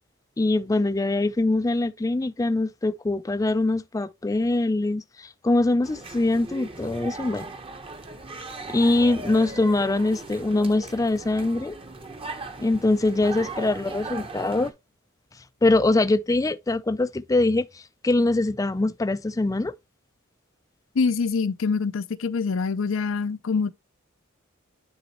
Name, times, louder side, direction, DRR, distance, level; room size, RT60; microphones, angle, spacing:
voice 1, 0.4-7.5 8.7-11.8 12.6-14.7 15.6-19.7, left 2 dB, 15° left, 0.4 m, -23 dB
sound 1, 5.8-14.7, right 3 dB, 25° right, 0.9 m, -38 dB
voice 2, 21.0-23.7, left 4 dB, 70° left, 0.5 m, -25 dB
9.6 x 4.1 x 2.9 m
head